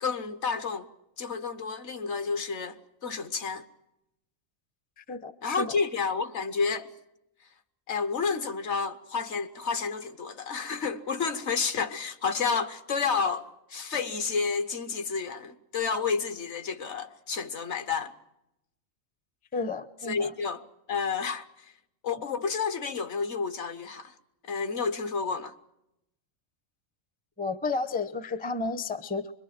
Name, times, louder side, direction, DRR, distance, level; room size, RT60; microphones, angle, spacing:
voice 1, 0.0-0.9 1.2-3.6 5.4-6.9 7.9-18.1 20.1-20.6 20.9-21.7 22.0-24.1 24.5-25.5, left 5 dB, 60° left, 1.3 m, -30 dB
voice 2, 5.0-5.7 19.5-20.3 27.4-29.3, left 3 dB, 10° left, 0.5 m, -32 dB
24.5 x 22.0 x 7.5 m
omnidirectional pair, 1.4 m